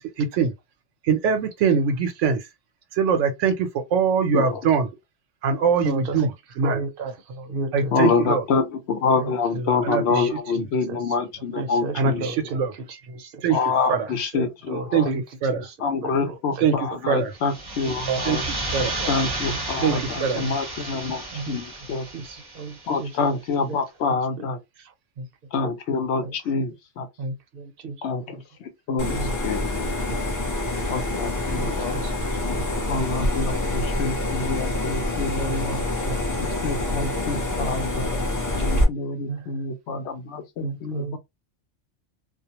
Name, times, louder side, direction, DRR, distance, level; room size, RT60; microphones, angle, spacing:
voice 1, 0.2-0.5 1.1-2.4 2.9-4.9 5.4-6.3 6.6-6.8 7.7-8.4 9.8-10.3 11.9-12.7 13.4-13.6 13.9-14.0 14.9-15.1 15.4-15.6 16.6-16.7 17.1-17.3 18.3-18.4 18.7-18.9 19.8-19.9 20.2-20.4, right 6 dB, 85° right, 1.0 m, -22 dB
voice 2, 4.3-4.7 7.9-12.3 13.5-15.1 15.8-18.4 19.1-22.1 22.9-24.6 25.5-27.1 28.0-29.2 29.4-29.8 30.9-32.0 32.9-35.8 36.4-38.2 38.5-41.2, left 4 dB, 70° left, 0.8 m, -27 dB
voice 3, 5.8-6.3 6.6-8.0 9.2-9.8 10.2-10.3 10.9-11.0 11.5-13.6 14.1-15.8 16.0-17.2 18.1-18.2 18.8-19.1 19.5-20.5 20.8-20.9 21.3-21.6 22.1-23.2 23.7-23.8 24.1-24.4 24.8-25.3 25.6-25.8 26.2-26.3 27.2-28.0 28.3-28.4 28.9-29.3 29.8-30.2 30.7-31.0 31.5-32.3 32.6-32.9 33.7-33.9 34.2-34.3 35.4-35.6 36.1-36.2 39.3-39.6 40.6-41.2, right 3 dB, 55° right, 0.8 m, -34 dB
sound 1, 17.4-23.0, right 2 dB, 25° right, 0.7 m, -32 dB
sound 2, 29.0-38.8, left 1 dB, 20° left, 0.5 m, -26 dB
2.4 x 2.0 x 2.8 m
omnidirectional pair, 1.2 m